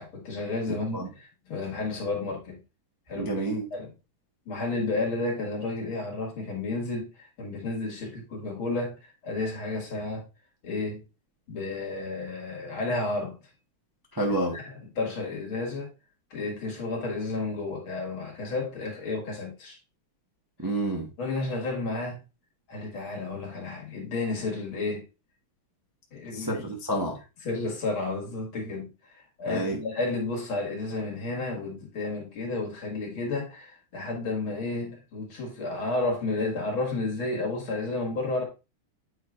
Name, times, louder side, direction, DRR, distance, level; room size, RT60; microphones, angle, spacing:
voice 1, 0.0-2.6 3.1-3.3 3.7-3.9 4.5-10.2 10.6-11.0 11.5-13.4 14.5-15.9 16.3-19.8 21.2-22.2 22.7-25.0 26.1-26.5 27.4-28.9 29.4-38.4, left 3 dB, 70° left, 2.9 m, -31 dB
voice 2, 3.1-3.6 14.1-14.6 20.6-21.1 26.3-27.2 29.5-29.8, right 1 dB, 35° right, 0.3 m, -28 dB
8.1 x 4.9 x 2.5 m
omnidirectional pair, 2.4 m